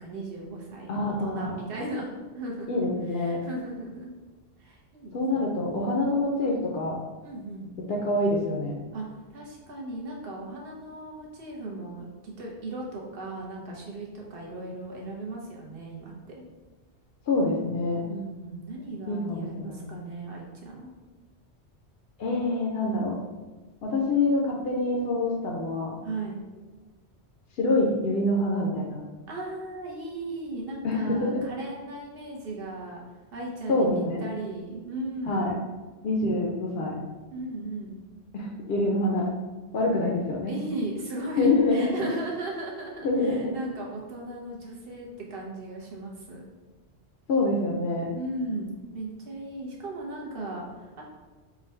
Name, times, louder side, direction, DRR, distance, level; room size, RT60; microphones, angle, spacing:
voice 1, 0.0-4.1 4.6-5.5 7.2-7.7 8.9-16.4 18.1-20.9 26.0-26.4 29.3-33.0 33.3-35.6 37.3-38.0 40.5-46.4 48.1-51.0, right 2 dB, 60° right, -2 dB, 1.0 m, -37 dB
voice 2, 0.9-1.6 2.7-3.4 5.1-7.0 8.0-8.8 17.3-18.0 19.1-19.8 22.2-23.2 23.8-26.0 27.6-29.0 30.8-31.4 33.7-34.2 35.3-35.5 36.0-37.0 38.3-39.3 39.7-40.5 41.4-42.1 43.0-43.5 47.3-48.1, left 2 dB, 65° left, -2 dB, 0.8 m, -26 dB
3.8 x 2.3 x 4.3 m, 1.3 s
omnidirectional pair, 1.1 m